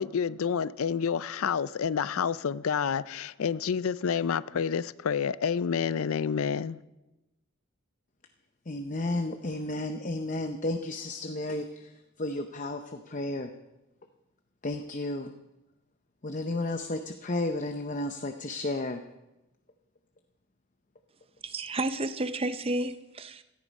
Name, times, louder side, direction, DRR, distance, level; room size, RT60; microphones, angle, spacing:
voice 1, 0.0-6.8, left 7 dB, 75° left, 0.4 m, -29 dB
voice 2, 8.7-11.9 12.2-13.5 14.6-15.3 16.2-19.0, left 2 dB, 35° left, 0.7 m, -32 dB
voice 3, 21.4-23.4, right 2 dB, 25° right, 0.7 m, -31 dB
17.0 x 13.5 x 5.3 m
head